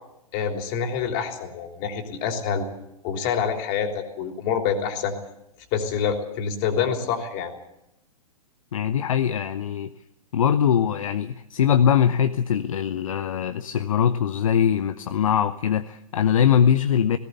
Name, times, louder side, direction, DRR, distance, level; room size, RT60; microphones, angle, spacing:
voice 1, 0.3-2.6 3.0-5.1 5.7-7.5, left 7 dB, 40° left, 5 dB, 3.5 m, -26 dB
voice 2, 8.7-9.9 10.3-17.2, left 8 dB, 60° left, 10 dB, 0.8 m, -22 dB
18.0 x 18.0 x 8.3 m, 0.84 s
figure-of-eight pair, 110°, 19 cm